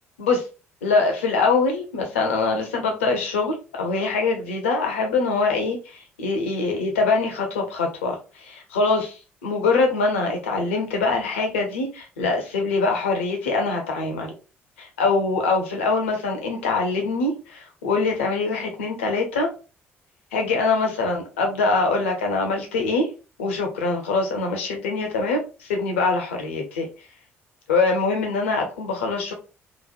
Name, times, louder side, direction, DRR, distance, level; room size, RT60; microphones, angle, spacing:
voice 1, 0.8-14.3 15.0-19.5 20.3-23.1 23.4-26.9 27.7-29.3, left 3 dB, 75° left, 0.6 m, -23 dB
2.9 x 2.1 x 2.4 m
figure-of-eight pair, 45°, 7 cm